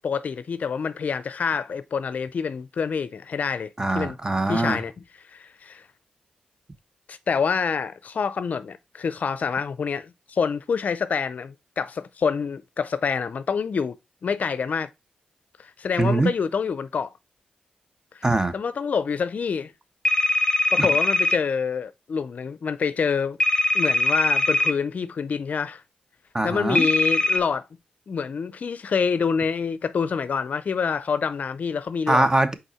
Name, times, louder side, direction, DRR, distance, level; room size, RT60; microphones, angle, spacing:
voice 1, 0.0-4.2 4.5-4.9 5.3-5.8 7.1-14.0 14.2-14.9 15.6-17.1 18.5-19.7 20.7-23.4 23.7-25.8 26.4-27.7 28.1-32.3, left 6 dB, 60° left, 0.5 m, -27 dB
voice 2, 3.8-4.8 16.0-16.3 18.2-18.5 20.8-20.9 26.3-26.9 32.1-32.5, right 2 dB, 20° right, 0.9 m, -22 dB
sound 1, 20.1-21.4 23.4-24.7 26.8-27.4, left 2 dB, 25° left, 0.9 m, -21 dB
5.4 x 4.1 x 4.2 m
cardioid pair, 50°, 3 cm